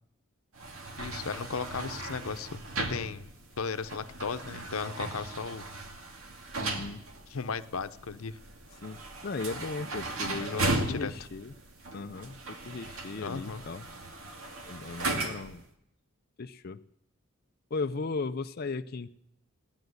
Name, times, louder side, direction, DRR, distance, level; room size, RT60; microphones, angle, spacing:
sound 1, 0.6-15.6, right 2 dB, 80° right, 2.2 m, -37 dB
voice 1, 1.0-3.3 3.6-5.6 7.3-8.4 10.5-11.1 13.2-13.6, left 5 dB, 90° left, 11 dB, 0.8 m, -36 dB
voice 2, 6.6-7.0 8.8-11.5 11.9-13.9 14.7-15.6 16.4-16.8 17.7-19.1, left 4 dB, 45° left, 7 dB, 0.5 m, -37 dB
16.5 x 10.5 x 8.0 m, 0.80 s
head